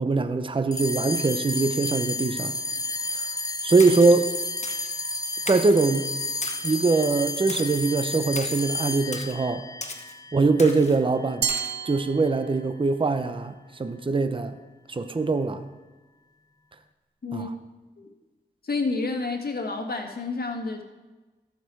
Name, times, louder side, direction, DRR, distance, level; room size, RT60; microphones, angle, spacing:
voice 1, 0.0-2.5 3.6-4.3 5.5-6.1 6.6-9.6 10.3-11.5 11.9-13.5 13.8-14.6 14.9-15.6 17.3-17.5, right 3 dB, 30° right, 0.7 m, -22 dB
sound 1, 0.7-11.4, left 2 dB, 20° left, 0.7 m, -31 dB
Splash splatter, 3.8-4.2 4.6-4.9 5.5-5.8 6.4-6.8 7.5-7.8 8.4-8.6 9.1-9.4 9.8-10.1 10.6-11.0 11.5-11.7, left 3 dB, 40° left, 1.1 m, -37 dB
Glass, 11.4-12.9, right 7 dB, 80° right, 0.5 m, -31 dB
voice 2, 17.2-17.5 18.0-18.1 18.6-20.8, left 3 dB, 60° left, 1.5 m, -29 dB
13.5 x 6.7 x 4.6 m
wide cardioid pair, 70°, 18 cm